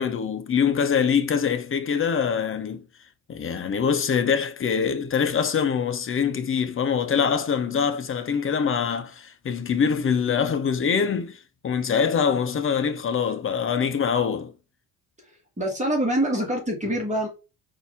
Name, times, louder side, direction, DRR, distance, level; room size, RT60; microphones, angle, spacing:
voice 1, 0.0-2.8 3.3-14.5, left 6 dB, 30° left, 0.7 m, -24 dB
voice 2, 15.6-17.3, right 1 dB, 15° right, 1.7 m, -25 dB
4.0 x 2.8 x 3.6 m
hypercardioid pair, 65°, 44 cm